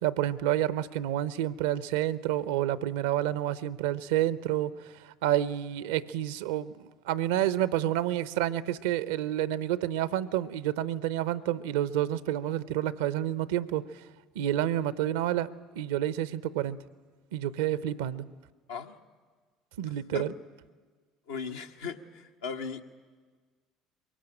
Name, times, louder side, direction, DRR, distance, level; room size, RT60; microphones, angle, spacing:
voice 1, 0.0-4.7 5.0-13.8 14.4-15.5 15.7-16.8 17.3-18.2 19.8-20.3, right 12 dB, 75° right, 18 dB, 0.6 m, -29 dB
voice 2, 21.3-22.8, left 5 dB, 80° left, 3 dB, 1.1 m, -37 dB
22.0 x 17.5 x 8.9 m, 1.5 s
hypercardioid pair, 65°, 0 cm